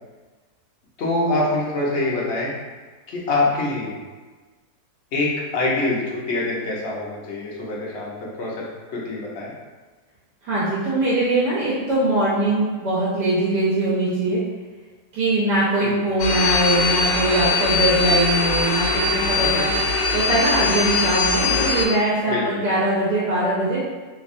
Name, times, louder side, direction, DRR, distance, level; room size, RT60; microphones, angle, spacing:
voice 1, 1.0-2.5 3.1-3.9 5.1-8.6 8.9-9.5 15.8-16.0 22.3-22.6, left 2 dB, 50° left, -5 dB, 0.9 m, -24 dB
voice 2, 10.4-14.4 15.1-19.7 20.1-23.8, right 1 dB, 85° right, -8 dB, 1.4 m, -21 dB
sound 1, 16.2-21.9, left 3 dB, 85° left, 1.2 m, -21 dB
3.3 x 3.1 x 2.5 m, 1.4 s
omnidirectional pair, 1.7 m